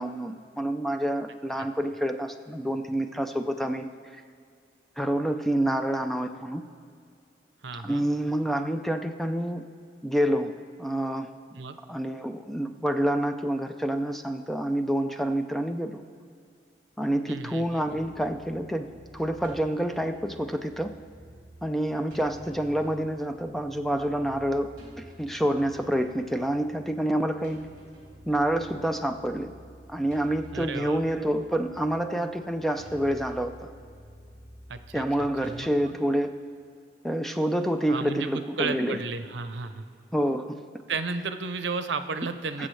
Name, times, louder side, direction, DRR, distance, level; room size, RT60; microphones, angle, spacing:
voice 1, 0.0-3.9 5.0-6.6 7.7-10.5 10.8-11.3 11.9-16.0 17.0-20.9 21.6-24.7 25.0-27.7 28.3-29.5 29.9-33.7 34.9-36.3 37.0-39.0 40.1-40.6 42.6-42.7, right 1 dB, ahead, 7 dB, 0.4 m, -28 dB
voice 2, 7.6-8.0 11.5-11.8 17.3-17.6 30.5-31.0 34.7-36.0 37.9-39.8 40.9-42.7, right 4 dB, 90° right, 10 dB, 0.7 m, -33 dB
sound 1, 17.7-35.7, equal, 50° right, 2.5 m, -50 dB
21.5 x 7.3 x 3.3 m, 2.2 s
head